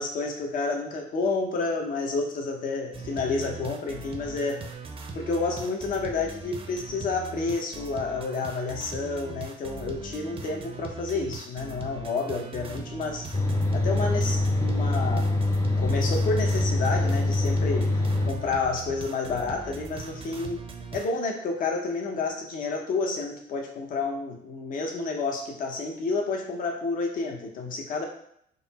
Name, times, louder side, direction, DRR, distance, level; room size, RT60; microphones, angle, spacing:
voice 1, 0.0-4.6 5.1-13.3 13.7-15.3 15.8-17.9 18.3-20.6 20.9-28.0, left 3 dB, 55° left, 1 dB, 0.8 m, -30 dB
sound 1, 2.9-21.1, right 4 dB, 35° right, 0.6 m, -40 dB
sound 2, 13.3-18.3, left 2 dB, 15° left, 0.6 m, -24 dB
4.0 x 2.0 x 4.1 m, 0.68 s
cardioid pair, 110°, 17 cm